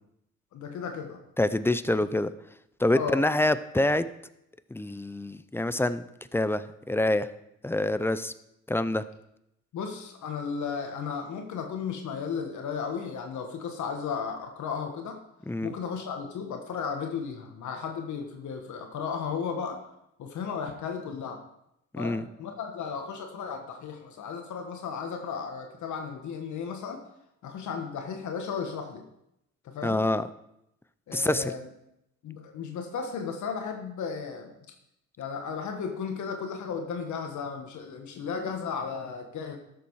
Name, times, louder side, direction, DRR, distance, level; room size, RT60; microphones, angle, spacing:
voice 1, 0.5-1.2 2.9-3.2 9.7-15.2 15.6-19.8 20.2-21.4 22.0-27.0 27.4-29.1 29.6-30.1 31.1-31.7 32.2-34.5 35.2-39.6, left 6 dB, 70° left, 4 dB, 1.4 m, -34 dB
voice 2, 1.4-2.3 2.8-4.0 4.7-6.0 6.3-7.3 7.6-8.3 8.7-9.0 15.5-15.7 21.9-22.2 29.8-30.2 31.1-31.5, left 1 dB, 10° left, 13 dB, 0.5 m, -26 dB
13.0 x 6.9 x 4.7 m, 0.81 s
cardioid pair, 90°, 30 cm